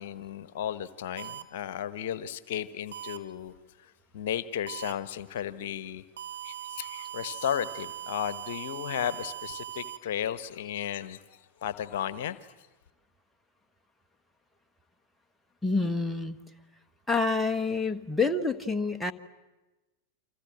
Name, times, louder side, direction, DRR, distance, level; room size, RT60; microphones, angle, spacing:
voice 1, 0.0-3.5 4.1-6.0 6.4-12.4, left 9 dB, 55° left, 15 dB, 1.2 m, -34 dB
sound 1, 1.2-1.4 2.9-3.2 4.7-4.9 6.2-10.0, right 12 dB, 60° right, 1.8 m, -40 dB
voice 2, 15.6-16.4 17.1-19.1, left 3 dB, 5° left, 5 dB, 1.3 m, -27 dB
29.0 x 26.5 x 7.6 m, 1.1 s
figure-of-eight pair, 90°, 0 cm